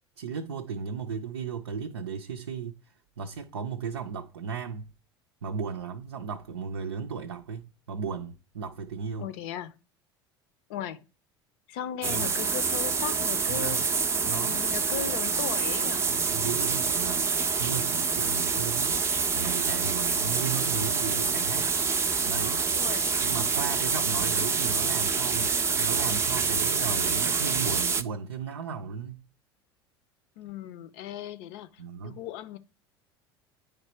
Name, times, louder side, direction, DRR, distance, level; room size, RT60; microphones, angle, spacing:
voice 1, 0.2-4.9 5.4-9.3 12.1-12.3 13.5-13.9 14.2-14.6 16.1-17.3 17.6-19.0 19.3-21.7 22.2-22.7 23.2-29.2 31.8-32.2, right 6 dB, 75° right, 0.5 m, -35 dB
voice 2, 9.2-9.7 10.7-11.0 11.7-16.1 22.7-23.1 30.4-32.6, left 10 dB, 55° left, 0.6 m, -37 dB
sound 1, 12.0-28.0, right 5 dB, 20° right, 0.5 m, -27 dB
9.4 x 3.2 x 4.3 m
figure-of-eight pair, 70°, 13 cm